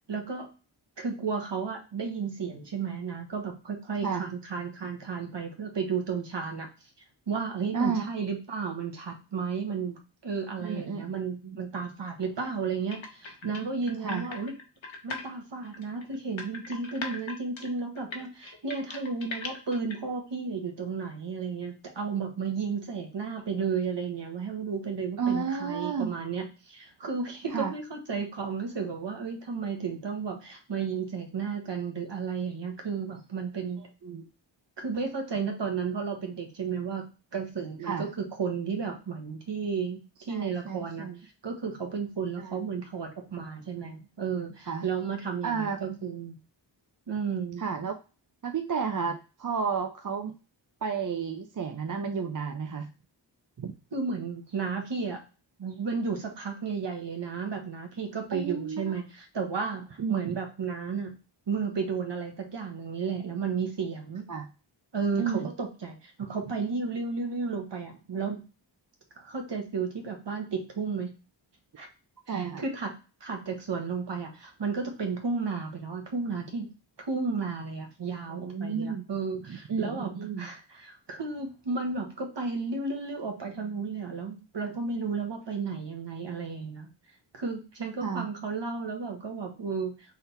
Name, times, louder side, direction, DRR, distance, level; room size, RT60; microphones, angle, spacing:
voice 1, 0.1-0.5 1.0-6.7 7.3-14.5 15.0-33.8 34.8-37.0 37.3-41.1 41.4-46.4 47.1-47.6 53.9-55.2 55.6-61.2 61.5-64.3 64.9-68.4 69.1-71.1 71.8-71.9 72.3-72.9 73.2-76.7 77.1-80.1 80.4-86.9 87.3-90.0, right 5 dB, 65° right, 3 dB, 1.3 m, -33 dB
voice 2, 7.7-8.1 10.6-11.0 11.4-11.6 14.0-14.3 25.2-26.1 27.5-27.7 34.0-34.3 37.8-38.1 40.3-41.2 42.4-42.6 44.7-44.8 45.4-45.8 47.6-47.9 48.4-50.4 50.8-52.9 53.6-53.7 58.3-58.9 60.0-60.4 64.3-64.5 65.2-65.5 72.3-72.6 78.3-79.0 79.5-80.5 88.0-88.3, right 6 dB, 45° right, 5 dB, 0.5 m, -32 dB
sound 1, 12.9-15.2 15.6-20.0, left 3 dB, 75° left, 1.1 m, -39 dB
3.8 x 3.4 x 4.1 m, 0.33 s
wide cardioid pair, 80°, 46 cm